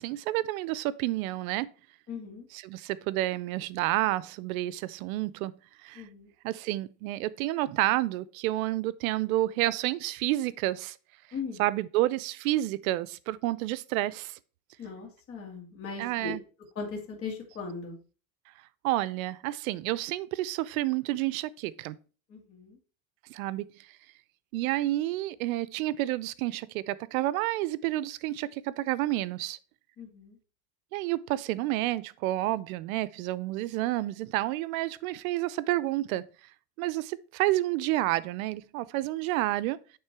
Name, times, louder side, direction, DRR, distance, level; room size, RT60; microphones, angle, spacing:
voice 1, 0.0-1.7 2.5-5.5 5.8-6.0 6.4-11.0 11.6-14.4 16.0-16.4 18.8-22.0 23.3-23.6 24.5-29.6 30.9-36.2 36.8-39.8, right 16 dB, 75° right, 0.6 m, -30 dB
voice 2, 2.1-2.5 5.9-6.3 11.3-11.6 14.8-16.4 16.7-18.0 22.3-22.8 30.0-30.4, left 4 dB, 30° left, 2.3 m, -38 dB
8.7 x 3.7 x 4.6 m
supercardioid pair, 145°, 42 cm